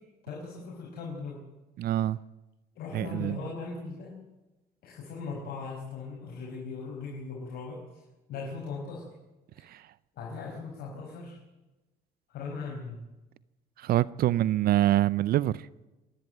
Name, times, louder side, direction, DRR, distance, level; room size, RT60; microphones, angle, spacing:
voice 1, 0.2-1.4 2.8-4.1 4.8-8.0 8.3-9.0 9.6-9.7 10.1-11.4 12.3-13.0, left 4 dB, 65° left, 5.9 m, -39 dB
voice 2, 1.8-2.2 2.9-3.4 9.7-9.8 13.8-15.6, right 13 dB, 65° right, 0.6 m, -25 dB
25.5 x 11.5 x 9.2 m
cardioid pair, 110°, 17 cm